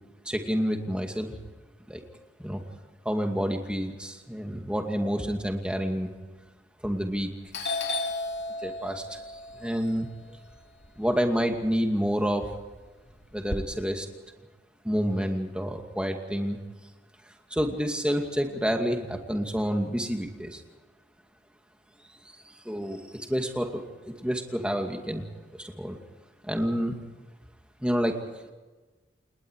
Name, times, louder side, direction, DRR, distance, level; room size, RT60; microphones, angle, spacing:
voice 1, 0.2-1.4 1.9-2.0 2.4-2.6 3.0-6.1 6.8-7.3 8.6-10.1 11.0-12.5 13.3-14.1 14.8-16.6 17.5-20.6 22.5-25.2 25.5-26.0 26.4-26.9 27.8-28.2, equal, 5° right, 3 dB, 2.4 m, -29 dB
Doorbell, 6.9-7.2 7.5-11.7 12.0-13.6, left 2 dB, 70° left, 2.6 m, -34 dB
29.0 x 20.0 x 4.9 m, 1.2 s
head